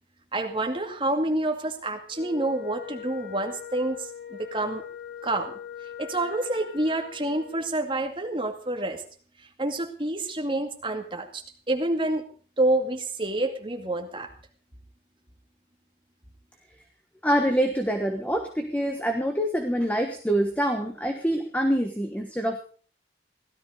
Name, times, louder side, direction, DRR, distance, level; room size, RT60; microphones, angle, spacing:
voice 1, 0.3-4.8 5.2-5.6 6.0-9.0 9.6-11.4 11.7-12.2 12.6-14.3, right 2 dB, 30° right, 3 dB, 2.2 m, -28 dB
Wind instrument woodwind instrument, 2.1-7.7, left 9 dB, 75° left, 2.7 m, -41 dB
voice 2, 17.2-22.6, equal, 10° left, 4 dB, 1.3 m, -25 dB
16.5 x 13.0 x 5.1 m, 0.43 s
head